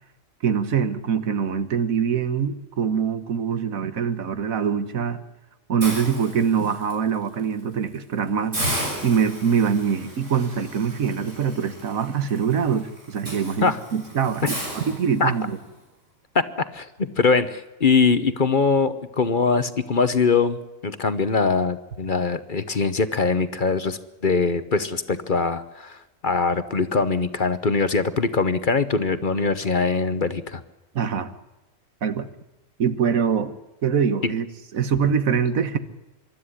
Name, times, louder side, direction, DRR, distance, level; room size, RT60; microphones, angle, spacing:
voice 1, 0.4-5.2 5.7-8.6 9.0-15.6 30.9-31.3 32.0-32.3 32.8-33.5 33.8-34.5 34.7-35.8, right 7 dB, 85° right, 12 dB, 1.6 m, -23 dB
Hiss, 5.8-6.9 7.4-7.6 7.9-8.0 8.5-15.6, right 1 dB, 65° right, 6.6 m, -34 dB
voice 2, 16.7-20.6 20.8-30.6 34.2-34.3, left 4 dB, 40° left, 12 dB, 1.0 m, -22 dB
24.5 x 12.5 x 10.0 m, 1.0 s
omnidirectional pair, 1.4 m